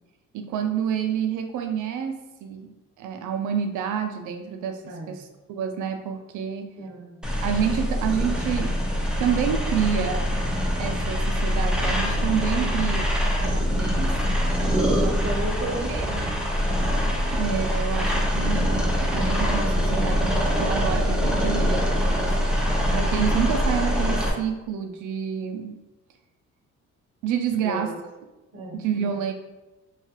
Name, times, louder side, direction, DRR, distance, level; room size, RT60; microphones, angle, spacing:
voice 1, 0.3-2.7 3.0-6.7 7.4-8.8 9.2-10.3 10.8-14.2 14.6-14.9 15.9-16.3 17.3-25.7 27.2-27.9 28.7-29.3, right 8 dB, 80° right, 6 dB, 0.5 m, -29 dB
voice 2, 4.8-5.2 6.8-7.1 12.6-12.8 14.9-16.5 27.6-28.0 28.5-28.8, right 2 dB, 50° right, 1 dB, 0.7 m, -33 dB
sound 1, 7.2-24.3, equal, 5° right, 0.5 m, -24 dB
3.0 x 2.3 x 2.8 m, 1.1 s
cardioid pair, 90°, 30 cm